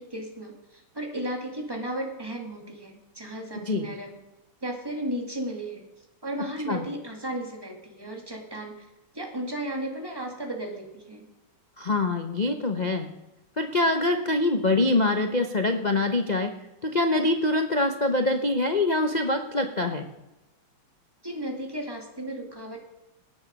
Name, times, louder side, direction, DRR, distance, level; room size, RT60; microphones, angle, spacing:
voice 1, 0.0-4.2 4.6-5.8 6.2-8.9 9.1-11.3 21.2-22.8, right 1 dB, 10° right, 2 dB, 2.3 m, -34 dB
voice 2, 11.8-13.1 13.6-16.5 16.8-20.0, left 2 dB, 75° left, 5 dB, 0.4 m, -24 dB
18.0 x 9.7 x 5.3 m, 0.99 s
omnidirectional pair, 2.3 m